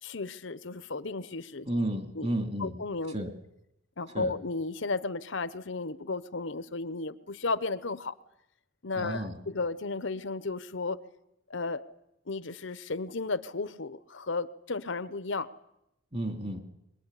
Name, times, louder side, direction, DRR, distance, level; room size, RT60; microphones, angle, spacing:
voice 1, 0.0-1.7 2.1-2.3 2.6-3.2 4.0-8.2 8.8-11.0 11.5-11.8 12.3-15.5, left 3 dB, 70° left, 14 dB, 1.0 m, -34 dB
voice 2, 1.7-2.7 3.1-3.3 4.1-4.3 9.0-9.4 16.1-16.6, right 1 dB, 35° right, 6 dB, 2.9 m, -32 dB
23.0 x 20.5 x 9.9 m, 0.84 s
head